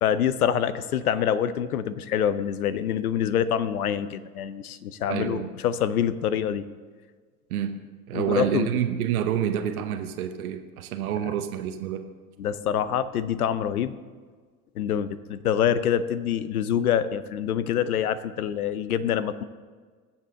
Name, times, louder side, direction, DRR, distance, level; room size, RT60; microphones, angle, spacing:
voice 1, 0.0-6.6 8.1-8.8 12.4-13.9 14.8-19.4, left 9 dB, 85° left, 15 dB, 0.8 m, -26 dB
voice 2, 5.1-5.5 7.5-7.7 8.1-12.0, right 9 dB, 80° right, 6 dB, 1.0 m, -28 dB
20.0 x 7.3 x 3.8 m, 1.5 s
hypercardioid pair, 80°, 43 cm